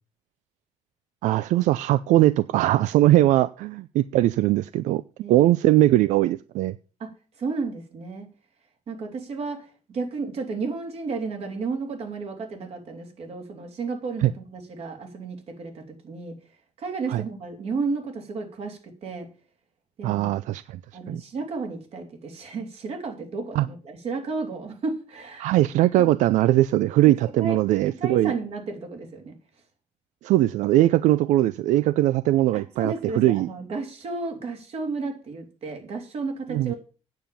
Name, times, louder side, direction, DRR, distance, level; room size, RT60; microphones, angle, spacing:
voice 1, 1.2-5.0 5.3-6.7 14.2-14.3 17.1-17.2 20.0-20.8 21.1-21.2 23.5-23.7 25.4-28.3 30.2-33.5 36.5-36.7, right 15 dB, 85° right, 16 dB, 0.4 m, -20 dB
voice 2, 5.2-5.5 7.0-7.1 7.4-8.3 8.9-16.3 16.8-19.3 20.0-20.3 20.9-25.5 25.9-26.1 27.4-27.6 28.0-29.3 32.5-36.8, right 4 dB, 55° right, 4 dB, 3.0 m, -33 dB
9.1 x 7.6 x 6.9 m, 0.37 s
cardioid pair, 125°, 12 cm